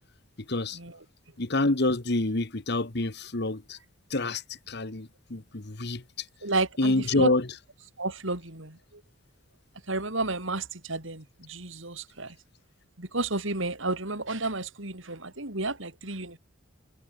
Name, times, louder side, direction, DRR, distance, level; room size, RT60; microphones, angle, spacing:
voice 1, 0.5-0.8 1.4-3.8 4.1-6.3 6.8-7.5, left 2 dB, 55° left, 1.4 m, -27 dB
voice 2, 6.4-7.3 8.0-9.0 9.9-12.4 13.0-16.4, right 2 dB, 70° right, 4.5 m, -32 dB
head